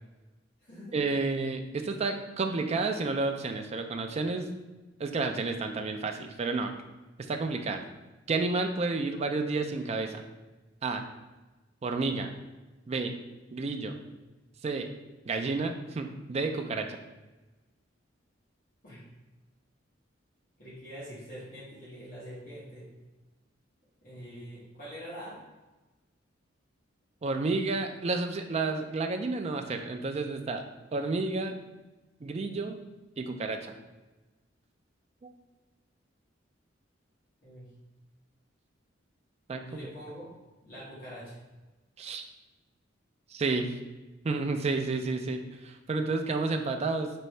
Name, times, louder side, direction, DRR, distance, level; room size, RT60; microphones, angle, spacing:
voice 1, 0.9-4.5 5.0-6.7 7.3-7.8 8.3-10.2 10.8-11.0 11.8-12.3 12.9-13.1 13.5-13.9 14.6-14.9 15.3-17.0 27.2-30.6 30.9-31.6 32.2-32.8 33.2-33.7 35.2-35.3 39.5-39.6 42.0-42.2 43.3-43.7 44.2-47.1, right 3 dB, 35° right, 5 dB, 0.4 m, -30 dB
voice 2, 20.6-22.8 24.0-25.4 37.4-37.7 39.6-40.3 40.6-41.4, equal, 45° left, -10 dB, 1.4 m, -44 dB
5.2 x 2.7 x 3.2 m, 1.1 s
head